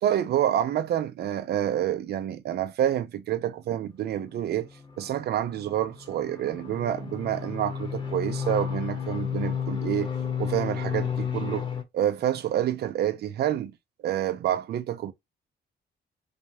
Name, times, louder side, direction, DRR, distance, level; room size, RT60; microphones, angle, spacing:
voice 1, 0.0-4.7 5.0-10.1 10.4-11.7 11.9-13.7 14.0-15.1, right 11 dB, 60° right, 0.6 m, -28 dB
sound 1, 4.8-11.8, left 7 dB, 25° left, 0.9 m, -32 dB
5.1 x 2.3 x 2.7 m
cardioid pair, 165°, 19 cm